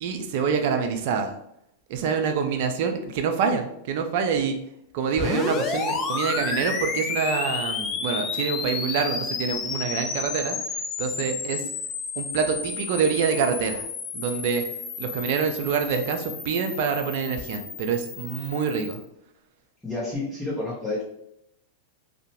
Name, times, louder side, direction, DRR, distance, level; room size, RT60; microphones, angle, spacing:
voice 1, 0.0-1.3 1.9-4.6 4.9-11.6 12.2-13.8 14.1-14.6 15.0-19.0, right 6 dB, 60° right, 6 dB, 0.3 m, -26 dB
sound 1, 5.2-19.0, left 5 dB, 30° left, 0.4 m, -31 dB
voice 2, 19.8-21.0, left 2 dB, 10° left, -8 dB, 0.8 m, -29 dB
2.6 x 2.1 x 2.8 m, 0.78 s
hypercardioid pair, 100°, 0 cm